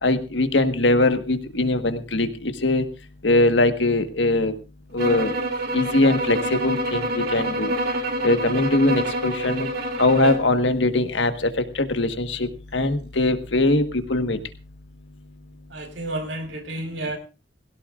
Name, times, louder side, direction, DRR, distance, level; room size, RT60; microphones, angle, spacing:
voice 1, 0.0-2.9 3.2-4.5 4.9-5.3 5.7-7.7 8.2-9.7 10.0-14.4, left 2 dB, 80° left, 8 dB, 1.5 m, -21 dB
sound 1, 5.0-10.5, right 1 dB, 60° right, 2.9 m, -27 dB
voice 2, 15.7-17.2, right 1 dB, 80° right, 5 dB, 4.9 m, -31 dB
20.5 x 17.0 x 2.5 m, 0.31 s
head